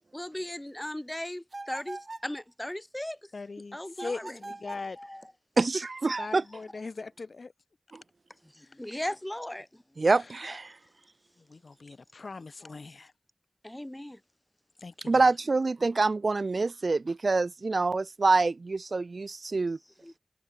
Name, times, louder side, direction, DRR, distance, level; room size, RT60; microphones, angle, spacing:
voice 1, 0.1-3.3 3.7-4.4 5.0-5.3 6.3-6.4 8.4-9.8 10.4-10.6 12.6-12.8 13.6-14.2 20.0-20.1, left 1 dB, 15° left, 5.4 m, -38 dB
sound 1, 1.5-2.3 3.9-4.9, right 2 dB, 45° right, 1.0 m, -42 dB
voice 2, 3.3-5.0 6.2-7.5 10.2-10.3 11.4-13.1 14.8-15.2, left 3 dB, 75° left, 4.0 m, -40 dB
voice 3, 5.6-6.4 10.0-10.7 15.1-19.8, right 3 dB, 70° right, 0.8 m, -26 dB
wide cardioid pair, 70°, 0 cm